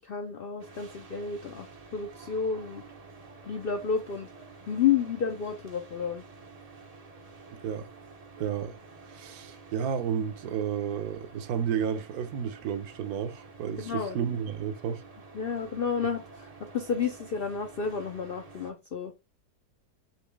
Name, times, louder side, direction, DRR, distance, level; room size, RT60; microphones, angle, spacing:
voice 1, 0.0-2.8 3.4-4.3 4.7-6.2 13.8-14.4 15.3-19.1, left 7 dB, 70° left, 0.5 m, -31 dB
sound 1, 0.6-18.7, right 4 dB, 40° right, 0.5 m, -50 dB
voice 2, 8.4-8.8 9.1-15.0, right 8 dB, 70° right, 1.1 m, -32 dB
4.3 x 3.0 x 3.3 m
omnidirectional pair, 1.7 m